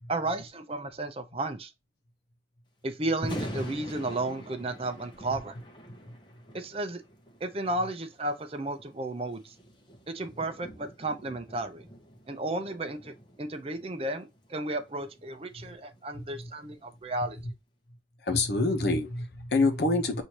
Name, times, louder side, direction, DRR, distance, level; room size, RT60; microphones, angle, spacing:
voice 1, 0.1-1.7 2.8-5.5 6.5-7.0 7.4-9.5 10.1-11.8 12.3-17.4, right 2 dB, 30° right, 0.6 m, -33 dB
Thunder, 3.1-17.2, equal, 25° left, 0.9 m, -45 dB
voice 2, 16.1-16.5 18.2-20.2, left 2 dB, 60° left, 0.9 m, -27 dB
6.2 x 2.7 x 2.9 m
head